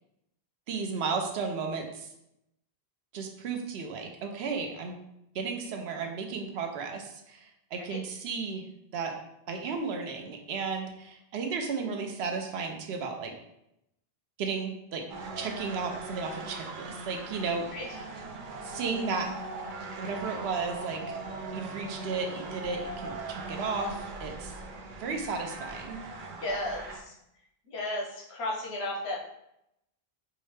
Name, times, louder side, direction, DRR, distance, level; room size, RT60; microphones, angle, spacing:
voice 1, 0.7-2.1 3.1-5.0 5.3-7.4 7.7-8.6 8.9-9.1 9.5-13.3 14.4-15.1 15.4-17.7 18.6-19.3 20.0-21.2 21.5-24.5 25.0-26.0, right 4 dB, 90° right, 3 dB, 0.9 m, -34 dB
sound 1, 15.1-27.0, right 3 dB, 60° right, 0.6 m, -40 dB
voice 2, 26.4-27.1 27.7-29.2, left 1 dB, 85° left, -2 dB, 1.1 m, -34 dB
4.7 x 2.1 x 3.2 m, 0.82 s
omnidirectional pair, 1.0 m